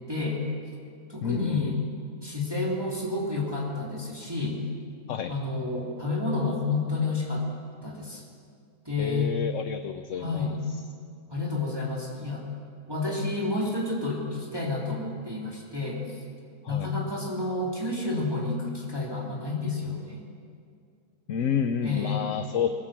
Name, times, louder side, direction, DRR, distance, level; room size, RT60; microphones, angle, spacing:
voice 1, 0.1-0.4 1.1-1.8 2.2-4.6 5.3-7.4 7.8-8.2 8.8-9.3 10.2-10.6 11.3-12.4 12.9-16.0 16.7-20.2 21.8-22.3, left 3 dB, 15° right, -3 dB, 2.9 m, -30 dB
voice 2, 1.2-1.8 5.1-5.3 9.0-10.6 16.6-16.9 21.3-22.7, left 8 dB, 60° left, 8 dB, 1.0 m, -29 dB
20.5 x 18.5 x 7.4 m, 2.3 s
omnidirectional pair, 1.7 m